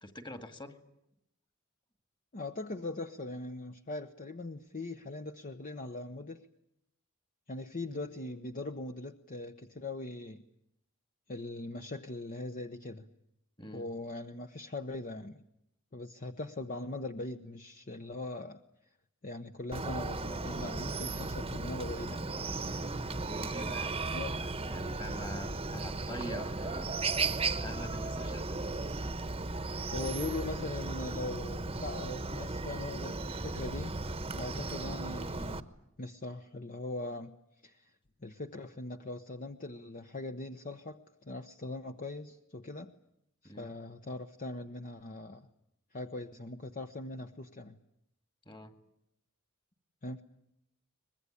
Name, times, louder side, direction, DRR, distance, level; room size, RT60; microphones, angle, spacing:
voice 1, 0.0-0.8 13.6-13.9 23.2-24.0 24.4-26.9 27.6-28.7 43.4-43.7 48.5-48.7, left 1 dB, 20° left, 8 dB, 1.9 m, -45 dB
voice 2, 2.3-6.5 7.5-10.4 11.3-13.1 13.7-15.4 15.9-18.6 19.2-22.5 24.1-24.4 29.9-34.0 34.3-35.6 36.0-37.3 37.6-37.9 38.2-42.9 43.4-45.5 45.9-47.8 50.0-50.2, left 2 dB, 40° left, 6 dB, 0.9 m, -41 dB
Chicken rooster, 19.7-35.6, right 3 dB, 25° right, 1.1 m, -36 dB
23.5 x 21.0 x 10.0 m, 0.80 s
head